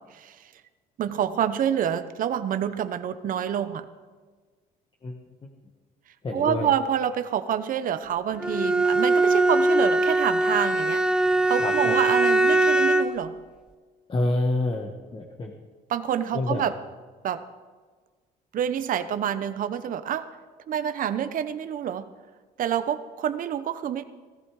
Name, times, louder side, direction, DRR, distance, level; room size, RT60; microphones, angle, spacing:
voice 1, 0.1-0.5 1.0-3.9 6.3-13.3 15.9-16.8 17.2-17.4 18.5-20.3 20.7-22.0 22.6-24.0, right 9 dB, 55° right, 11 dB, 0.9 m, -27 dB
voice 2, 5.0-5.5 6.2-6.7 11.6-12.0 14.1-15.5 16.3-16.7, left 2 dB, 30° left, 2 dB, 1.5 m, -28 dB
Bowed string instrument, 8.4-13.2, right 2 dB, 5° right, 0.7 m, -21 dB
16.0 x 14.5 x 4.9 m, 1.4 s
cardioid pair, 110°, 17 cm